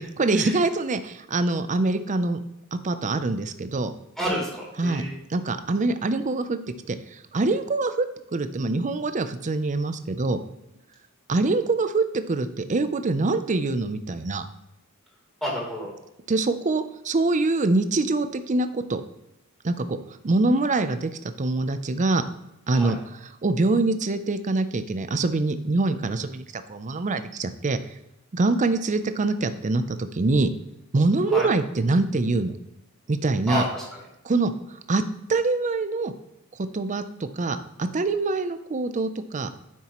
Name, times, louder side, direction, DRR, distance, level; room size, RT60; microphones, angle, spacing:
voice 1, 0.2-2.4 2.7-3.9 4.8-6.6 6.9-8.1 8.3-10.4 11.3-14.4 16.3-19.0 19.6-20.0 20.2-21.1 21.4-22.2 22.7-23.0 23.4-27.8 28.3-30.5 30.9-32.6 33.1-33.6 34.2-34.5 34.9-35.0 35.3-36.1 36.7-39.5, right 3 dB, 35° right, 10 dB, 0.5 m, -24 dB
voice 2, 4.2-5.1 15.4-15.9 22.7-22.9 31.3-31.5 33.5-33.8, equal, ahead, -5 dB, 3.4 m, -29 dB
9.7 x 7.2 x 3.0 m, 0.89 s
head